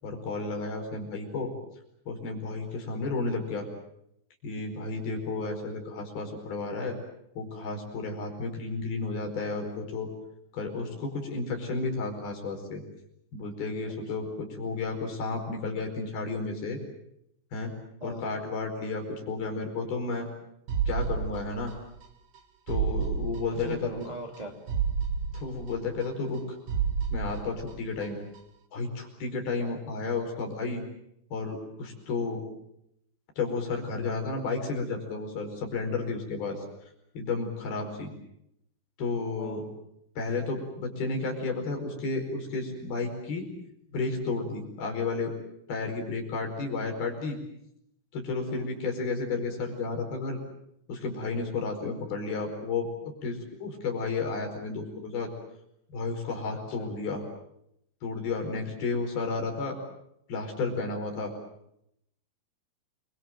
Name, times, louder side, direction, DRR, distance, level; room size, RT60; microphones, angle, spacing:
voice 1, 0.0-1.5 2.1-3.7 4.4-7.0 7.4-10.1 10.5-12.8 13.3-16.8 17.5-17.7 18.0-20.3 20.9-21.7 22.7-23.9 25.3-26.4 27.1-28.2 28.7-30.8 31.3-32.4 33.4-36.6 37.1-38.1 39.0-39.6 40.2-43.5 43.9-45.3 45.7-47.4 48.1-50.4 50.9-52.9 53.2-55.3 55.9-57.2 58.0-59.8 60.3-61.3, left 3 dB, 50° left, 3 dB, 6.4 m, -32 dB
voice 2, 18.0-18.3 23.5-24.5 29.6-29.8 36.5-36.6 37.8-37.9 39.4-39.7 48.5-48.7 56.5-56.9, right 1 dB, 15° right, 1 dB, 1.2 m, -41 dB
sound 1, 20.7-22.1 22.3-22.4 22.7-24.1 24.3-24.4 24.7-26.4 26.7-28.1 28.3-28.4, right 6 dB, 90° right, 1.4 m, -31 dB
28.5 x 23.5 x 7.7 m, 0.78 s
omnidirectional pair, 5.9 m